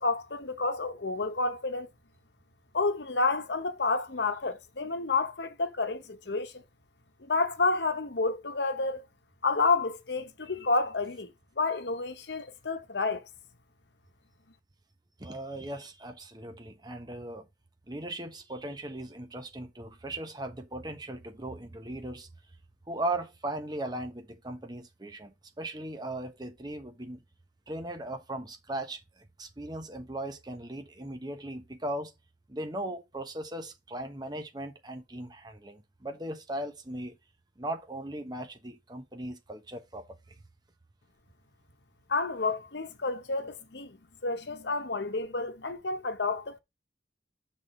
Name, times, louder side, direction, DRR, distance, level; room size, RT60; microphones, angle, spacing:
voice 1, 0.0-1.9 2.7-6.6 7.2-9.0 9.4-11.3 11.6-13.2 42.1-44.0 44.2-46.6, left 3 dB, 70° left, 1.0 m, -30 dB
voice 2, 15.2-17.5 17.9-22.3 22.9-27.2 27.7-32.1 32.5-37.2 37.6-40.1, right 1 dB, 20° right, 1.1 m, -38 dB
5.9 x 4.2 x 6.3 m
head